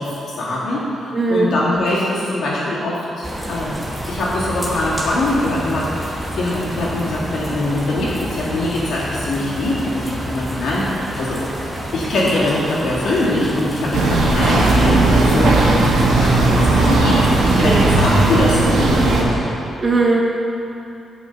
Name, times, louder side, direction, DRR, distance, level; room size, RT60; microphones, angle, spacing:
voice 1, 0.0-3.8 4.1-11.4 11.9-19.5, left 1 dB, 65° left, -6 dB, 2.4 m, -22 dB
voice 2, 1.1-1.6 17.6-17.9 19.8-20.2, right 3 dB, 25° right, -1 dB, 0.9 m, -18 dB
sound 1, 3.2-18.4, equal, 5° right, 1.1 m, -29 dB
sound 2, 13.9-19.2, right 2 dB, 75° right, 1.5 m, -16 dB
15.0 x 5.4 x 4.0 m, 2.8 s
wide cardioid pair, 160°, 0 cm